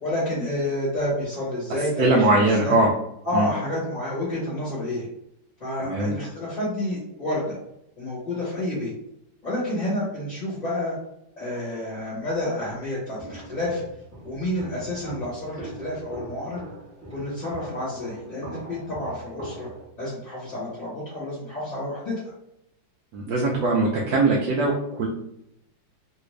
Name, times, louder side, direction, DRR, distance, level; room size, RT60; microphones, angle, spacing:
voice 1, 0.0-2.8 3.2-5.1 5.6-7.6 8.0-8.9 9.4-10.9 11.4-13.8 14.2-16.6 17.1-19.7 20.0-22.3, left 1 dB, 30° left, -9 dB, 0.9 m, -29 dB
voice 2, 2.0-2.9 3.3-3.5 5.8-6.1 23.1-25.1, right 2 dB, 70° right, -2 dB, 1.1 m, -21 dB
Walk footsteps, 13.2-19.9, right 1 dB, 15° right, 0.6 m, -41 dB
3.1 x 2.6 x 3.2 m, 0.81 s
omnidirectional pair, 2.1 m